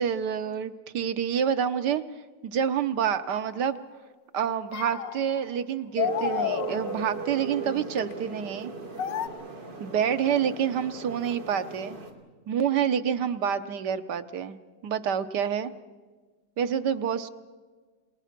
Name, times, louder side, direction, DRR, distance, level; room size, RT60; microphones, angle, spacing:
voice 1, 0.0-2.0 2.4-3.8 4.3-8.7 9.8-12.0 12.5-14.6 14.8-15.7 16.6-17.3, right 8 dB, 70° right, 10 dB, 1.5 m, -27 dB
sound 1, 3.4-3.7 4.7-5.6 6.0-7.3 8.0-8.1 9.0-9.3, left 9 dB, 80° left, 1.5 m, -31 dB
sound 2, 6.0-12.1, right 5 dB, 90° right, 3.3 m, -37 dB
30.0 x 19.0 x 5.9 m, 1.4 s
omnidirectional pair, 1.9 m